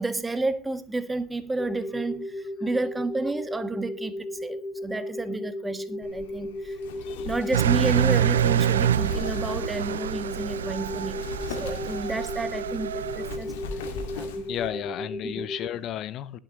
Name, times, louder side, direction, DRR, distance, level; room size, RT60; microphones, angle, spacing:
voice 1, 0.0-6.8 7.2-13.6 13.9-14.5 15.2-15.3, right 2 dB, 15° right, 1.7 m, -31 dB
sound 1, 1.6-15.7, left 1 dB, 25° left, 4.0 m, -35 dB
Wind, 6.0-14.7, left 4 dB, 75° left, 2.2 m, -40 dB
Engine, 7.5-13.4, right 10 dB, 85° right, 0.4 m, -26 dB
voice 2, 14.5-16.4, left 11 dB, 50° left, 0.7 m, -33 dB
20.5 x 7.7 x 3.1 m
hypercardioid pair, 75°, 0 cm